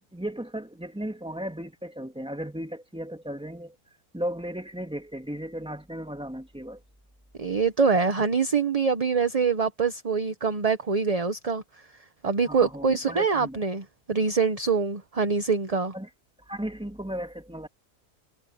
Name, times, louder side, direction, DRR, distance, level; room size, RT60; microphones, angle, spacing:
voice 1, 0.0-3.8 4.1-6.8 8.2-8.3 12.5-13.6 15.9-16.1 16.5-17.7, equal, 5° right, 2.1 m, -35 dB
voice 2, 7.4-11.6 12.2-15.9, right 5 dB, 30° right, 0.8 m, -24 dB
omnidirectional pair, 1.7 m